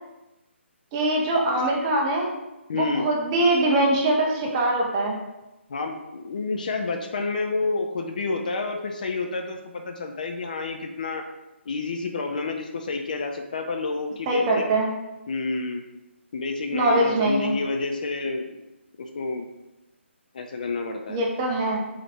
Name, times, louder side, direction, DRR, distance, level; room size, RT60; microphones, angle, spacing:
voice 1, 0.9-2.3 2.7-5.2 14.3-14.9 16.7-17.5 21.1-21.8, right 1 dB, 20° right, -1 dB, 0.7 m, -22 dB
voice 2, 2.7-3.1 5.7-11.2 11.7-14.7 15.3-15.8 16.3-18.6 19.0-19.5 20.3-21.2, left 3 dB, 40° left, 5 dB, 0.4 m, -29 dB
3.5 x 3.3 x 3.3 m, 0.97 s
figure-of-eight pair, 140°, 7 cm